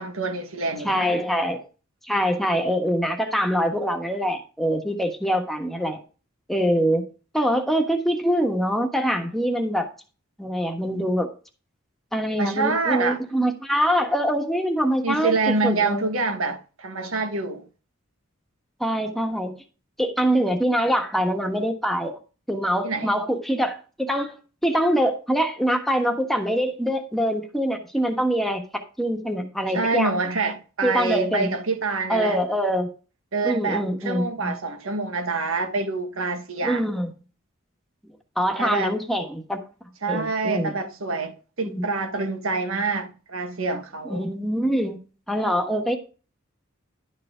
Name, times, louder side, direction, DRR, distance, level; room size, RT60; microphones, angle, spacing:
voice 1, 0.0-1.2 12.4-13.2 15.0-17.6 22.8-23.1 29.7-32.4 33.3-36.8 38.6-38.9 40.0-44.2, right 3 dB, 90° right, 1.4 m, -26 dB
voice 2, 0.8-1.6 2.0-6.0 6.5-7.0 7.3-9.9 10.4-11.3 12.1-16.0 18.8-19.6 20.0-22.2 22.5-24.3 24.6-28.6 29.0-30.1 30.8-31.5 32.1-32.9 33.4-34.5 36.6-37.1 38.0-39.6 40.1-40.7 41.6-41.8 44.0-45.0 45.3-46.0, equal, ahead, 1.3 m, -24 dB
11.5 x 4.8 x 5.0 m
head